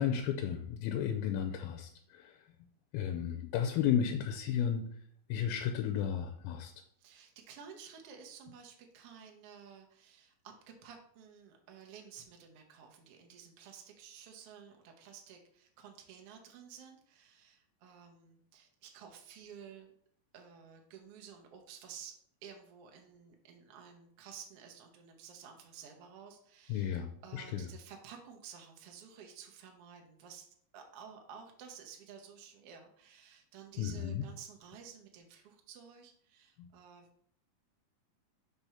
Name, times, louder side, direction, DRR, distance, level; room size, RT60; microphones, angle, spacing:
voice 1, 0.0-2.4 2.9-4.8 5.3-6.7 26.7-27.7 33.8-34.2 36.6-36.7, left 8 dB, 85° left, 5 dB, 2.4 m, -33 dB
voice 2, 7.0-19.9 20.3-22.2 22.4-30.5 30.7-37.3, right 7 dB, 75° right, 3 dB, 1.3 m, -53 dB
6.1 x 3.4 x 5.6 m, 0.66 s
omnidirectional pair, 4.1 m